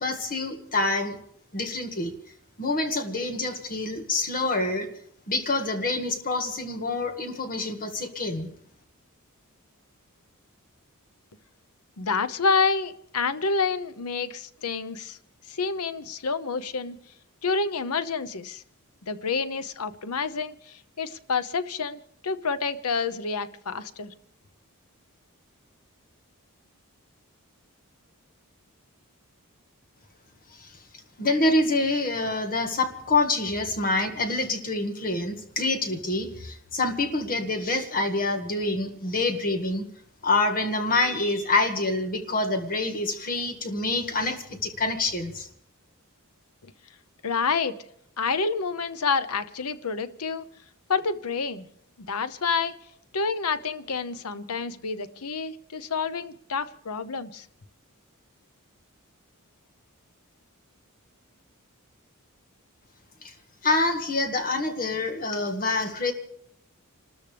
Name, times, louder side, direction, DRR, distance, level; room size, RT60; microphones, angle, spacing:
voice 1, 0.0-1.2 1.5-2.1 2.6-4.9 5.3-8.5 30.6-30.7 31.2-39.8 40.2-45.5 63.2-63.3 63.6-66.1, left 2 dB, 40° left, 5 dB, 1.8 m, -26 dB
voice 2, 12.0-15.2 15.5-17.0 17.4-18.6 19.0-24.1 46.6-46.7 47.2-47.8 48.2-50.4 50.9-51.7 52.0-52.7 53.1-57.5, left 4 dB, 80° left, 13 dB, 0.9 m, -28 dB
28.5 x 13.5 x 3.4 m, 0.66 s
head